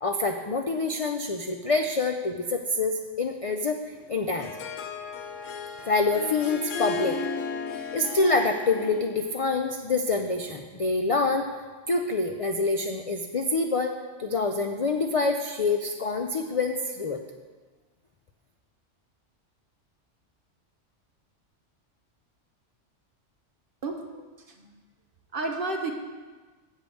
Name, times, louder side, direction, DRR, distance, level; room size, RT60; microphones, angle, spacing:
voice 1, 0.0-3.8 4.1-4.5 5.9-7.2 7.9-11.5 11.9-13.9 14.2-17.2, left 3 dB, 55° left, 4 dB, 0.3 m, -26 dB
Harp, 4.0-9.3, left 4 dB, 85° left, 1.1 m, -34 dB
voice 2, 23.8-24.7 25.3-25.9, right 2 dB, 50° right, 3 dB, 1.1 m, -32 dB
8.3 x 5.2 x 7.5 m, 1.3 s
omnidirectional pair, 1.3 m